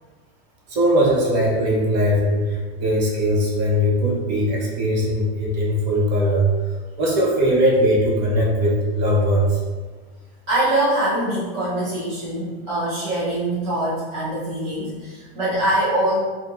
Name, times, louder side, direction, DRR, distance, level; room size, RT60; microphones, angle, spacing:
voice 1, 0.7-6.5 7.0-9.6, equal, 45° right, -4 dB, 0.7 m, -20 dB
voice 2, 10.5-16.2, right 1 dB, 10° right, -13 dB, 0.4 m, -23 dB
3.5 x 2.1 x 2.8 m, 1.4 s
supercardioid pair, 180°, 32 cm